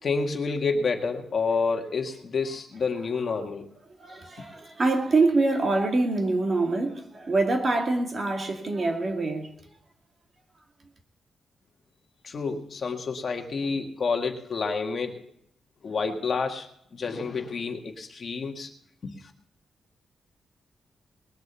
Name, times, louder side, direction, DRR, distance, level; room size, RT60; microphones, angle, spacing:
voice 1, 0.0-3.7 12.2-15.2 15.8-18.7 19.0-19.3, left 4 dB, 40° left, 1.8 m, -29 dB
voice 2, 4.0-9.5, right 3 dB, 35° right, 2.4 m, -25 dB
20.5 x 7.9 x 6.9 m
wide cardioid pair, 150°, 0 cm